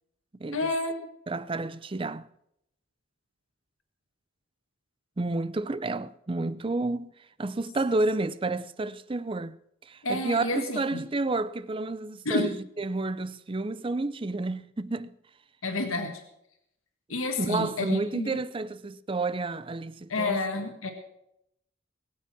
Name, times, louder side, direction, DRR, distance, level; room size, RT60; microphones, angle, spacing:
voice 1, 0.5-1.1 10.0-11.0 12.3-12.5 15.6-16.2 17.1-18.4 20.1-20.9, left 2 dB, 85° left, 1.8 m, -30 dB
voice 2, 1.3-2.3 5.2-7.1 7.4-9.6 9.9-15.1 17.4-20.4, right 2 dB, 25° right, 0.5 m, -30 dB
21.0 x 8.4 x 6.1 m
head